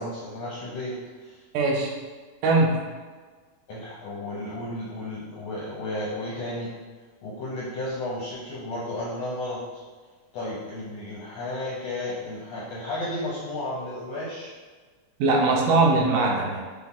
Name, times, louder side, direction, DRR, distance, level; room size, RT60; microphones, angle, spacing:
voice 1, 0.0-1.4 3.7-6.7 7.2-9.6 10.3-14.5, left 1 dB, 75° left, -7 dB, 1.5 m, -33 dB
voice 2, 1.5-1.9 2.4-2.8 15.2-16.6, right 3 dB, 90° right, -1 dB, 2.3 m, -21 dB
5.8 x 2.1 x 3.6 m, 1.4 s
omnidirectional pair, 3.7 m